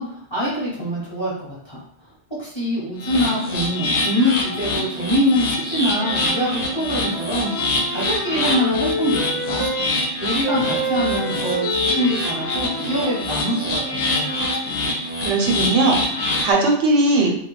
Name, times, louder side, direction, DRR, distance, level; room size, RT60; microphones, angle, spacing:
voice 1, 0.0-1.8 2.4-7.5 7.9-9.7 10.2-14.3, equal, 25° left, -8 dB, 0.8 m, -24 dB
sound 1, 3.0-16.5, left 2 dB, 60° left, 0.6 m, -25 dB
sound 2, 5.8-9.9 10.4-14.7, right 2 dB, 50° right, 0.6 m, -30 dB
voice 2, 15.2-17.3, right 2 dB, 85° right, 0 dB, 1.0 m, -19 dB
2.3 x 2.2 x 3.0 m, 0.69 s
omnidirectional pair, 1.2 m